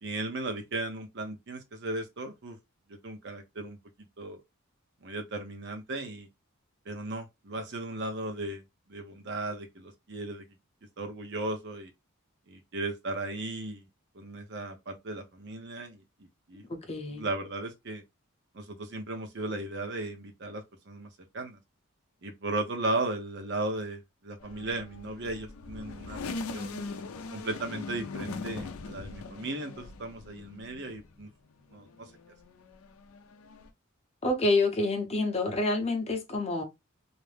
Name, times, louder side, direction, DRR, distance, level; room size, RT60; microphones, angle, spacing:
voice 1, 0.0-2.6 2.9-4.4 5.0-6.3 6.9-8.6 8.9-10.5 11.0-11.9 12.5-13.9 14.1-16.0 16.5-16.6 17.1-18.0 18.5-21.1 21.3-21.6 22.2-26.8 27.3-31.3 31.7-32.1, right 2 dB, 55° right, 0.7 m, -36 dB
voice 2, 16.7-17.3 34.2-36.6, left 2 dB, 30° left, 0.7 m, -28 dB
sound 1, 24.4-31.3 31.7-33.7, left 3 dB, 80° left, 0.4 m, -41 dB
2.6 x 2.1 x 3.2 m
head